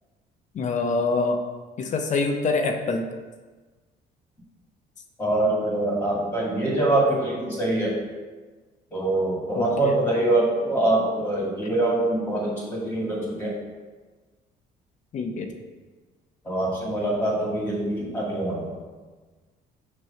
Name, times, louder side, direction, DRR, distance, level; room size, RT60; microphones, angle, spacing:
voice 1, 0.5-1.4 1.8-3.0 9.5-10.0 15.1-15.5, left 3 dB, 45° left, 4 dB, 0.7 m, -25 dB
voice 2, 5.2-8.0 8.9-13.6 16.4-18.7, right 2 dB, 10° left, -4 dB, 2.0 m, -24 dB
6.2 x 3.1 x 5.6 m, 1.3 s
cardioid pair, 110°, 17 cm